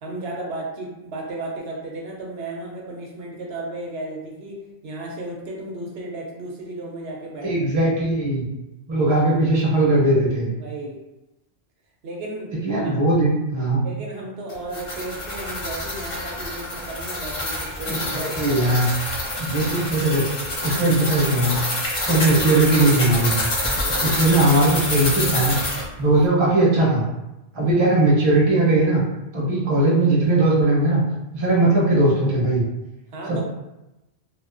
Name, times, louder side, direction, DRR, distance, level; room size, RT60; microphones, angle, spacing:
voice 1, 0.0-4.6 4.8-7.7 10.6-11.0 12.0-12.5 12.8-13.2 13.8-18.7 23.8-24.1 27.6-27.9 33.1-33.4, right 2 dB, 75° right, -2 dB, 0.8 m, -34 dB
voice 2, 7.4-8.4 8.9-10.5 12.6-13.8 17.9-18.9 19.4-20.3 20.6-21.6 22.1-23.5 24.0-25.6 26.0-27.1 27.5-29.0 29.3-31.0 31.3-32.6 33.3-33.4, right 2 dB, 35° right, -5 dB, 0.6 m, -19 dB
sound 1, 14.5-25.8, left 1 dB, 40° left, 0.5 m, -27 dB
2.3 x 2.3 x 2.4 m, 0.94 s
omnidirectional pair, 1.1 m